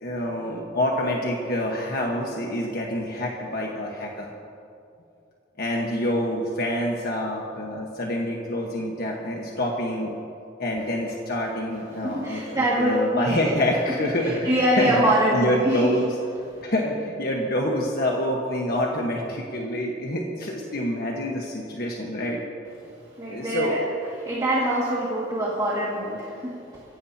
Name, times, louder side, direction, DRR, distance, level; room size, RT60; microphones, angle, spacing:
voice 1, 0.0-4.3 5.6-10.1 10.6-14.9 15.3-16.1 16.6-22.4 23.3-23.8, left 1 dB, 50° left, -1 dB, 1.4 m, -27 dB
voice 2, 12.0-13.6 14.0-15.9 23.2-23.8 24.2-26.8, right 1 dB, 20° right, -7 dB, 2.1 m, -24 dB
24.5 x 16.0 x 2.9 m, 2.5 s
head